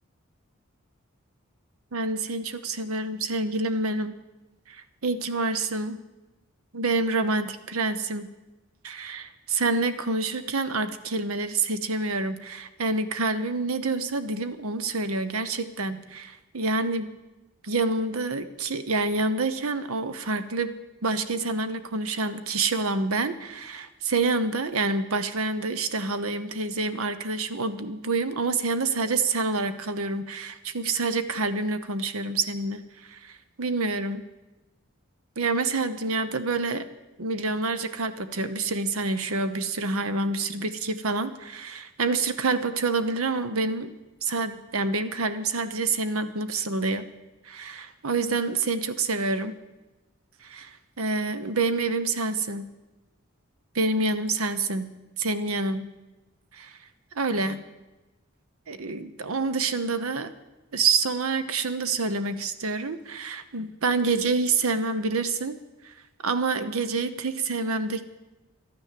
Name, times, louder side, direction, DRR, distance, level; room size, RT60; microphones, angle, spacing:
voice 1, 1.9-4.1 4.7-6.0 6.7-8.3 8.8-17.1 17.6-20.7 21.0-32.8 33.1-34.2 35.4-36.9 37.2-43.9 44.2-47.1 47.4-49.6 50.4-52.7 53.7-54.9 55.2-55.9 56.5-56.8 57.1-57.6 58.7-60.3 60.7-65.6 65.8-65.9 66.2-68.0, right 3 dB, 85° right, 11 dB, 0.9 m, -27 dB
13.0 x 9.6 x 7.6 m, 1.1 s
head